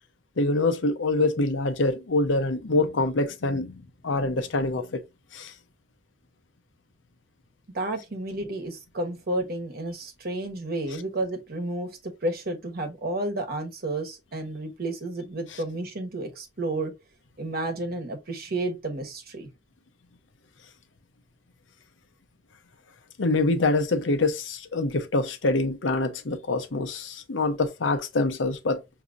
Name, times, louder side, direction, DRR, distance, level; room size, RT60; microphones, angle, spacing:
voice 1, 0.4-5.0 5.3-5.5 23.2-28.8, left 2 dB, 85° left, 0.8 m, -25 dB
voice 2, 7.7-16.9 17.4-19.5, right 2 dB, 55° right, 1.1 m, -31 dB
6.0 x 2.8 x 2.5 m
head